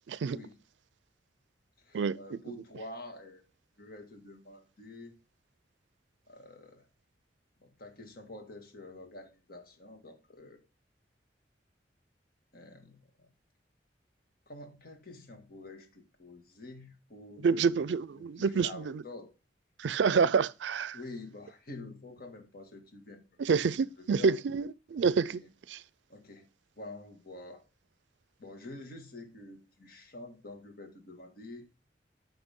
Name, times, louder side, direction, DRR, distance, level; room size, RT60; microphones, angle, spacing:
voice 1, 0.1-0.4 1.9-2.4 17.4-19.0 19.8-21.0 23.4-25.4 25.7-25.8, right 5 dB, 75° right, 0.4 m, -28 dB
voice 2, 1.8-3.4 3.8-5.1 6.3-6.9 7.6-10.6 12.5-13.0 14.5-17.7 18.2-19.3 20.9-23.2 23.6-24.3 25.2-25.5 26.1-26.5 26.8-27.6 28.4-31.7, left 2 dB, 55° left, 1.9 m, -47 dB
9.9 x 6.0 x 3.6 m
head